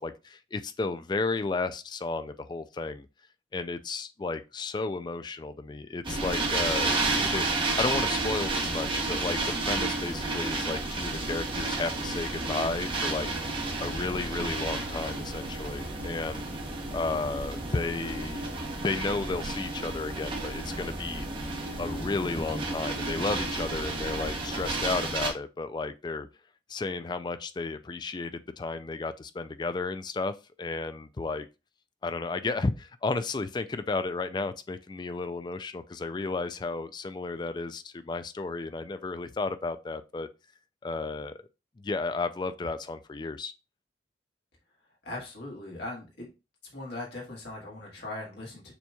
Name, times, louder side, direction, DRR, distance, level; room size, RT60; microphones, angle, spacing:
voice 1, 0.0-3.1 3.5-13.3 13.8-16.4 16.9-18.5 18.8-21.3 21.8-26.3 26.7-31.5 32.0-40.3 40.8-41.3 41.8-43.5, left 3 dB, 25° left, 0.3 m, -33 dB
sound 1, 6.0-25.3, right 2 dB, 30° right, 0.8 m, -31 dB
voice 2, 45.0-46.3 46.7-48.7, left 2 dB, 70° left, 1.7 m, -39 dB
6.8 x 3.0 x 2.3 m
head